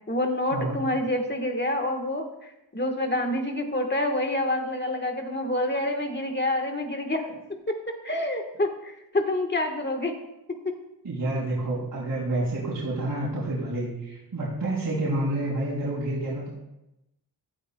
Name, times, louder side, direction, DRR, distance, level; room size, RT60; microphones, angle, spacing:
voice 1, 0.1-7.3 7.7-10.1 10.5-10.8, left 1 dB, 25° left, 3 dB, 1.3 m, -27 dB
voice 2, 11.0-16.6, right 1 dB, 65° right, -8 dB, 4.3 m, -29 dB
15.5 x 12.5 x 2.2 m, 0.90 s
wide cardioid pair, 130°, 41 cm